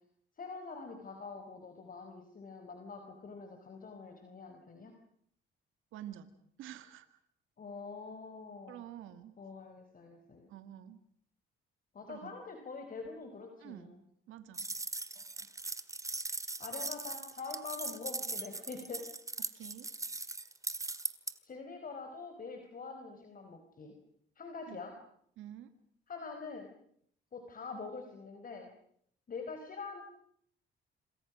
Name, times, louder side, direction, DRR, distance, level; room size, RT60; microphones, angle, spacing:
voice 1, 0.4-4.9 7.6-8.8 9.4-10.5 11.9-14.0 15.1-15.5 16.6-19.1 21.4-23.9 24.4-24.9 26.1-26.7 27.3-28.7 29.3-30.0, left 4 dB, 45° left, 5 dB, 4.6 m, -45 dB
voice 2, 5.9-6.3 6.6-7.2 8.7-9.3 10.5-11.0 12.1-12.4 13.6-13.9 14.3-14.7 19.5-19.9 24.7-24.8 25.4-25.7, right 11 dB, 90° right, 10 dB, 2.1 m, -48 dB
sound 1, 14.5-21.3, right 2 dB, 15° right, 2.0 m, -39 dB
27.5 x 26.5 x 6.3 m, 0.67 s
cardioid pair, 90°, 20 cm